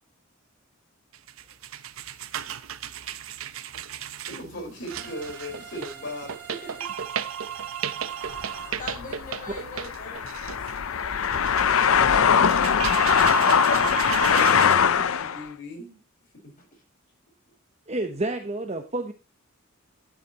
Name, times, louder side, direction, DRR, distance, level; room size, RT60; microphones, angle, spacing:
sound 1, 1.1-14.8, right 9 dB, 75° right, 0.7 m, -34 dB
voice 1, 4.3-6.3 14.2-16.0 16.4-16.5, left 1 dB, 60° left, 1 dB, 4.7 m, -37 dB
sound 2, 4.9-8.7, right 6 dB, 50° right, 4.1 m, -44 dB
sound 3, 8.3-15.4, left 7 dB, 80° left, 0.6 m, -22 dB
voice 2, 8.8-10.2 12.8-12.9 16.6-16.7, left 2 dB, 40° left, 0 dB, 5.2 m, -41 dB
voice 3, 17.9-19.1, right 2 dB, 30° right, 6 dB, 1.0 m, -29 dB
11.5 x 9.8 x 2.9 m, 0.30 s
head